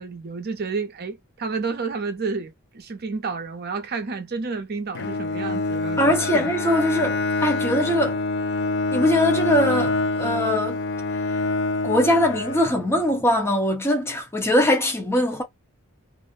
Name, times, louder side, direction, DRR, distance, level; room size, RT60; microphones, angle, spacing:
voice 1, 0.0-6.5, right 4 dB, 45° right, 0.6 m, -30 dB
Bowed string instrument, 4.9-13.2, left 3 dB, 55° left, 0.4 m, -26 dB
voice 2, 6.0-8.2 8.9-10.8 11.8-15.4, left 1 dB, 10° left, 0.8 m, -21 dB
2.5 x 2.0 x 2.6 m
head